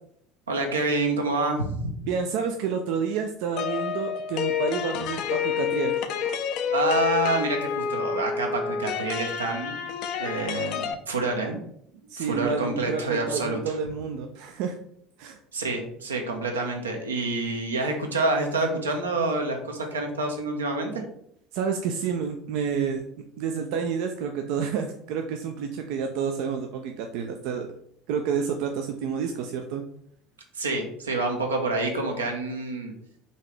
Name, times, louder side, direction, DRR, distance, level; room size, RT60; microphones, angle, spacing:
voice 1, 0.5-2.0 6.7-9.7 10.2-11.6 12.2-13.8 15.5-21.0 30.5-32.9, right 2 dB, 80° right, 3 dB, 0.8 m, -27 dB
voice 2, 2.1-6.0 12.1-14.8 15.2-15.4 21.5-23.0 23.4-27.7 28.1-29.8, right 6 dB, 60° right, 5 dB, 0.4 m, -29 dB
sound 1, 3.6-10.9, left 7 dB, 55° left, 0.4 m, -29 dB
4.0 x 3.5 x 3.2 m, 0.69 s
figure-of-eight pair, 65°, 0 cm